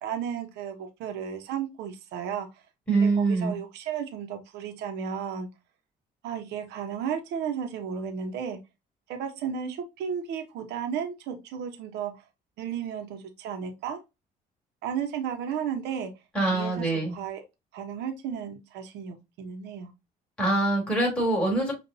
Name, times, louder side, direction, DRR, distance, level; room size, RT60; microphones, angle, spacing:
voice 1, 0.0-2.5 2.9-5.5 6.2-8.6 9.1-12.1 12.6-14.0 14.8-16.1 16.5-16.9 17.1-17.4 17.7-19.9, right 8 dB, 85° right, 5 dB, 0.9 m, -33 dB
voice 2, 2.9-3.6 16.3-17.1 20.4-21.7, right 2 dB, 5° left, -3 dB, 2.6 m, -24 dB
5.3 x 2.5 x 2.7 m, 0.24 s
cardioid pair, 110°, 17 cm